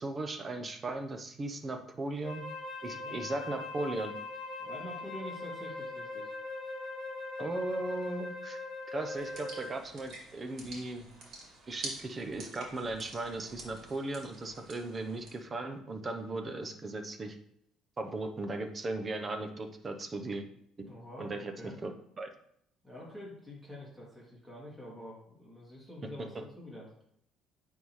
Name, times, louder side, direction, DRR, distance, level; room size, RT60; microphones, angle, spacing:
voice 1, 0.0-2.5 2.8-4.1 7.4-8.6 8.9-11.1 11.7-17.4 18.0-20.5 20.8-20.9 21.2-21.9 22.2-22.3, right 2 dB, 30° right, 7 dB, 0.8 m, -37 dB
Wind instrument woodwind instrument, 2.2-9.8, left 2 dB, 55° left, 1.4 m, -41 dB
voice 2, 4.6-6.3 20.8-21.7 22.8-26.9, left 1 dB, 5° right, -6 dB, 2.6 m, -47 dB
sound 1, 9.1-15.3, right 3 dB, 60° right, 2.1 m, -48 dB
9.3 x 3.6 x 3.1 m, 0.71 s
cardioid pair, 105°, 0 cm